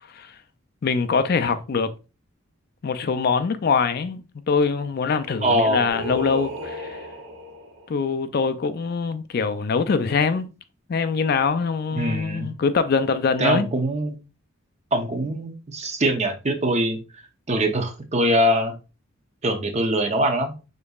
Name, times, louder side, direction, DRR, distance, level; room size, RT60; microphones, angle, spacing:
voice 1, 0.8-1.9 2.8-7.0 7.9-10.5 10.9-13.7, left 5 dB, 50° left, 0.4 m, -23 dB
voice 2, 5.4-5.9 11.9-12.5 13.4-14.2 14.9-18.8 19.4-20.5, right 1 dB, 35° right, 0.7 m, -23 dB
Singing, 5.9-7.9, left 1 dB, 75° right, 1.6 m, -34 dB
5.2 x 4.0 x 2.3 m
head